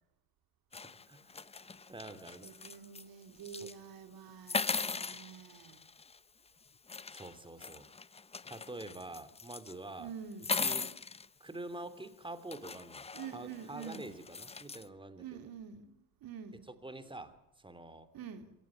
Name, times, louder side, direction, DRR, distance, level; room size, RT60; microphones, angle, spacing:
sound 1, 0.7-3.0 3.4-3.7 4.5-6.2 6.9-9.7 10.3-11.3 12.0-12.1 12.5-14.9, left 4 dB, 15° left, 0.8 m, -39 dB
voice 1, 1.6-2.8 3.6-3.7 7.1-7.9 8.5-10.1 10.5-10.9 11.4-13.1 13.3-15.4 16.6-18.1, right 2 dB, 10° right, 2.8 m, -46 dB
voice 2, 2.4-5.8 10.0-10.5 13.1-14.1 15.2-16.7 18.1-18.5, right 7 dB, 50° right, 2.7 m, -47 dB
27.0 x 14.5 x 9.5 m
hypercardioid pair, 65°, 45 cm